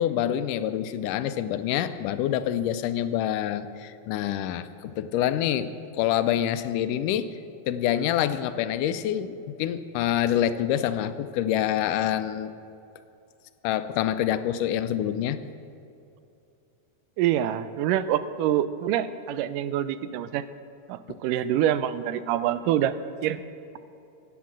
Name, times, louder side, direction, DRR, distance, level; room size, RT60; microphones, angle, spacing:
voice 1, 0.0-5.7 5.9-7.3 7.7-12.5 13.6-15.4, left 11 dB, 80° left, 11 dB, 2.1 m, -26 dB
voice 2, 17.2-20.4 20.9-22.9 23.2-23.4, right 11 dB, 85° right, 13 dB, 2.2 m, -26 dB
15.5 x 8.6 x 7.5 m, 2.7 s
omnidirectional pair, 3.7 m